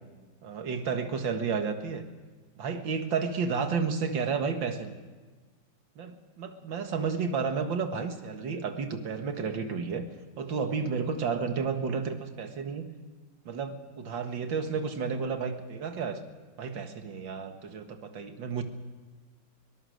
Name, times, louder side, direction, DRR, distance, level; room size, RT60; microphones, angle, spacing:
voice 1, 0.4-2.0 2.6-5.0 6.0-10.0 10.4-12.9 13.5-16.2 16.6-18.6, right 5 dB, 85° right, 6 dB, 2.4 m, -31 dB
23.5 x 18.0 x 6.5 m, 1.3 s
omnidirectional pair, 2.0 m